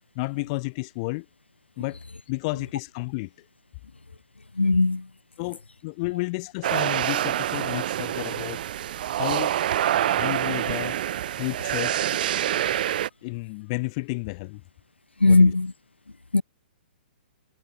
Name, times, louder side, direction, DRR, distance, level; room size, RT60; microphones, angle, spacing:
voice 1, 0.2-1.3 1.8-2.0 2.3-3.3 5.4-8.6 9.1-9.6 10.2-11.0 11.3-12.0 13.2-14.6 15.2-15.5, left 26 dB, 40° left, 2.1 m, -31 dB
voice 2, 4.6-5.1 15.2-15.7 16.3-16.4, left 3 dB, 90° left, 2.2 m, -18 dB
sound 1, 6.6-13.1, right 11 dB, 55° right, 1.2 m, -26 dB
figure-of-eight pair, 120°, 6 cm